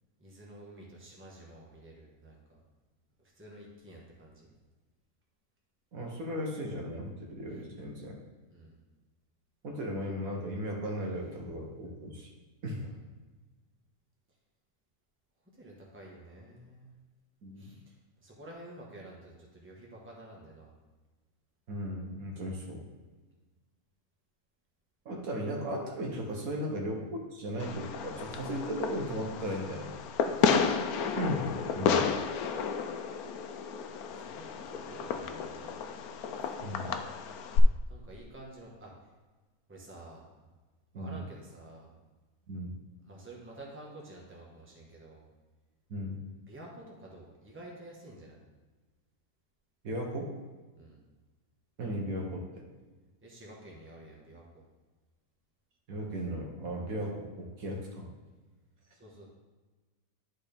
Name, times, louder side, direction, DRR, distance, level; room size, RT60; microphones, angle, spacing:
voice 1, 0.2-2.6 3.2-4.5 8.5-8.8 12.7-13.0 15.5-16.9 17.6-20.7 30.4-30.8 34.1-35.8 36.3-36.6 37.9-39.1 39.7-40.5 40.9-41.9 43.0-45.3 46.3-48.4 50.8-51.0 53.2-54.7 58.9-59.3, right 1 dB, 10° right, -3 dB, 1.2 m, -50 dB
voice 2, 5.9-8.2 9.6-12.3 12.6-12.8 17.4-17.6 21.7-22.8 25.0-29.9 31.2-32.1 36.6-37.0 40.9-41.2 42.5-42.7 45.9-46.2 49.8-50.3 51.8-52.5 55.9-58.1, equal, 70° right, 0 dB, 1.5 m, -36 dB
Fireworks, 27.6-37.6, left 6 dB, 85° left, 1.1 m, -32 dB
10.5 x 4.3 x 3.4 m, 1.3 s
omnidirectional pair, 1.5 m